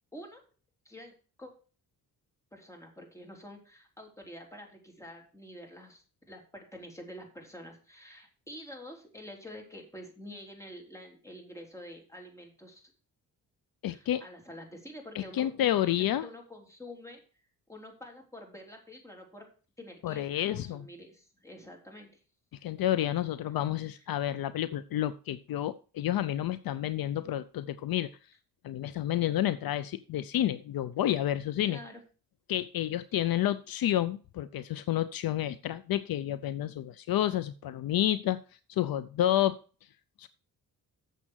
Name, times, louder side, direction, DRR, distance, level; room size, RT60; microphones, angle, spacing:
voice 1, 0.1-0.4 0.9-1.1 1.4-1.5 2.5-12.9 13.9-17.2 17.7-19.5 19.8-22.2 31.6-32.0, left 1 dB, 10° left, 1 dB, 3.5 m, -47 dB
voice 2, 13.8-14.2 15.1-16.3 20.0-20.8 22.6-28.1 28.6-31.8 32.5-38.4 38.7-39.6 40.2-40.3, left 12 dB, 70° left, 14 dB, 0.6 m, -30 dB
7.4 x 6.8 x 6.3 m, 0.37 s
cardioid pair, 85°, 37 cm